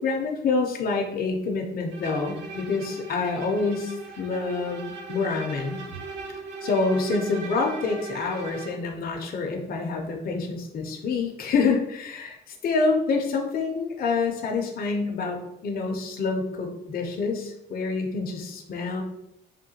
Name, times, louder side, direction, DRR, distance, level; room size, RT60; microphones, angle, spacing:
voice 1, 0.0-5.8 6.6-19.0, left 4 dB, 50° left, 2 dB, 0.5 m, -27 dB
Bowed string instrument, 1.9-8.9, right 4 dB, 65° right, 0.6 m, -39 dB
3.6 x 2.2 x 2.8 m, 0.81 s
cardioid pair, 90°, 20 cm